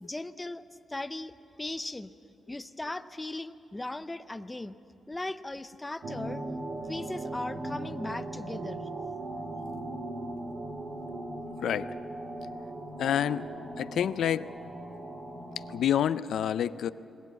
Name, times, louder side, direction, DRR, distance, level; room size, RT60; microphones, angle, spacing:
voice 1, 0.0-2.1 2.5-4.7 5.1-6.4 6.9-8.8, left 2 dB, 10° left, 11 dB, 0.5 m, -38 dB
sound 1, 6.0-15.8, right 2 dB, 45° right, 2.1 m, -38 dB
voice 2, 11.6-12.0 13.0-13.5 13.8-14.5 15.6-16.9, left 9 dB, 80° left, 14 dB, 0.5 m, -28 dB
21.5 x 18.5 x 8.4 m, 2.7 s
wide cardioid pair, 140°, 0 cm